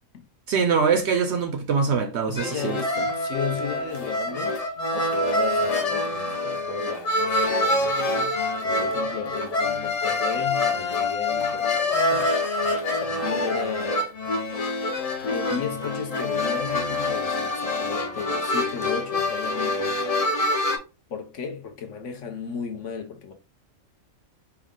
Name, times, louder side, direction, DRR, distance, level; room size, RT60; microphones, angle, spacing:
voice 1, 0.5-2.8, right 5 dB, 65° right, 0.7 m, -23 dB
voice 2, 2.2-8.4 8.6-12.3 13.0-14.0 15.2-20.0 21.1-23.3, left 6 dB, 65° left, 1.0 m, -34 dB
sound 1, 2.4-20.8, left 2 dB, 45° left, 0.5 m, -26 dB
4.6 x 2.2 x 3.6 m
omnidirectional pair, 1.4 m